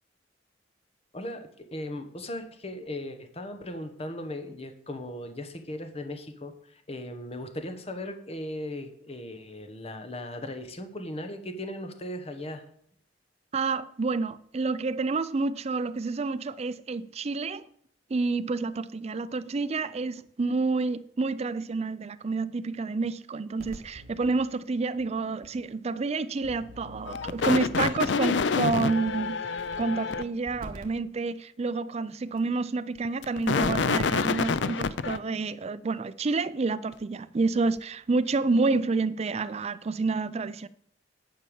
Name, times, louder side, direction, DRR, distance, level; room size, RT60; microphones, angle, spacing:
voice 1, 1.1-12.6, left 1 dB, 35° left, 1.2 m, -38 dB
voice 2, 13.5-17.7 18.1-29.4 29.8-40.7, right 3 dB, 35° right, 0.4 m, -29 dB
sound 1, 23.6-24.3 25.0-25.1 25.4-25.5 26.4-28.1 29.1-29.2 29.6-30.1 30.5-30.9 32.4-32.5 33.5-33.9 34.2-34.4, equal, 55° right, 1.5 m, -45 dB
sound 2, 27.1-30.2 33.0-35.2, left 5 dB, 70° left, 0.5 m, -27 dB
10.5 x 5.6 x 7.0 m
head